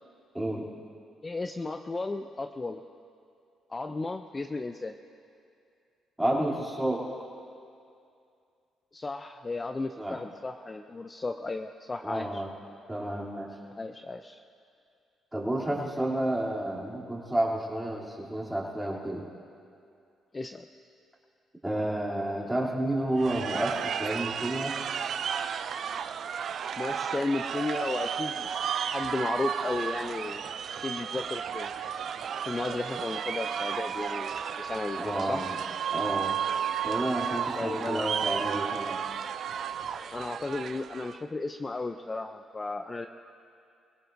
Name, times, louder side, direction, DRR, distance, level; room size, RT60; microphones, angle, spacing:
voice 1, 0.3-0.7 6.2-7.1 10.0-10.2 12.0-12.5 12.9-13.5 15.3-19.3 21.6-24.7 35.0-35.6 35.9-36.4 36.8-39.0, right 1 dB, 10° right, -5 dB, 3.1 m, -30 dB
voice 2, 1.2-2.8 3.7-5.0 8.9-12.4 13.8-14.4 20.3-20.7 26.8-28.5 28.9-30.4 30.8-31.7 32.4-35.4 37.5-38.1 40.1-43.1, left 3 dB, 25° left, 7 dB, 0.5 m, -34 dB
sound 1, 23.2-41.2, right 8 dB, 60° right, 0.4 m, -33 dB
23.5 x 17.0 x 2.7 m, 2.5 s
cardioid pair, 90°, 0 cm